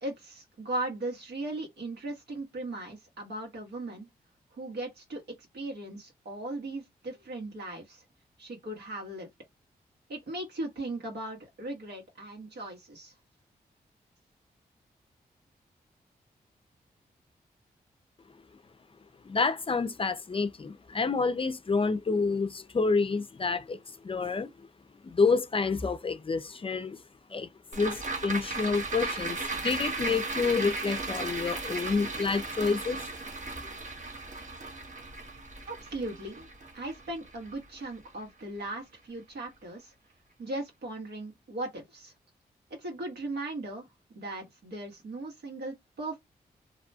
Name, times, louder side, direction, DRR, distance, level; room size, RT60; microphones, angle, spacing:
voice 1, 0.0-4.1 4.5-5.2 5.5-8.0 8.4-9.3 10.1-13.1 35.6-36.5 36.7-39.9 40.4-42.1 42.8-43.9 44.1-46.2, right 2 dB, 80° right, 1.4 m, -38 dB
voice 2, 19.3-23.8 24.0-24.5 25.0-27.0 27.3-33.0, left 4 dB, 35° left, 0.5 m, -28 dB
sound 1, 27.7-38.2 38.6-38.7, right 3 dB, 50° right, 0.9 m, -36 dB
2.7 x 2.1 x 2.7 m
supercardioid pair, 45°, 17 cm